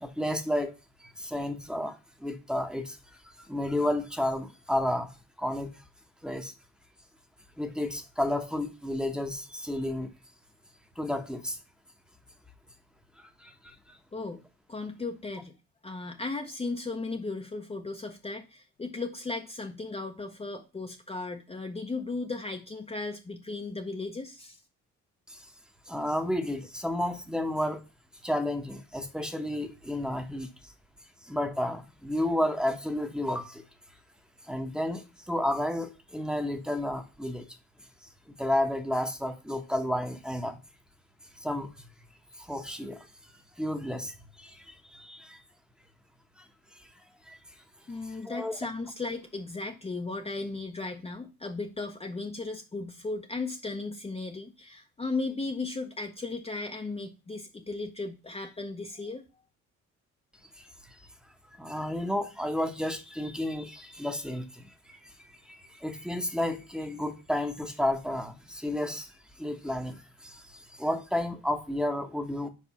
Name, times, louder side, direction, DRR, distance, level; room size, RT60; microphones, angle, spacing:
voice 1, 0.0-0.7 1.0-5.1 5.4-5.7 6.2-6.5 7.6-10.1 11.0-11.6 13.2-14.0 25.3-25.5 25.9-27.8 28.2-30.7 31.2-33.6 34.4-37.5 38.0-40.6 41.4-41.9 42.4-43.1 43.6-45.4 46.4-46.5 46.8-46.9 47.3-47.4 48.0-48.6 60.6-61.0 61.6-65.1 65.4-72.5, left 1 dB, ahead, 1.0 m, -32 dB
voice 2, 14.1-14.4 14.7-15.5 15.8-24.6 47.9-59.2, left 3 dB, 20° left, 0.7 m, -36 dB
4.8 x 4.8 x 5.6 m
cardioid pair, 90°, 30 cm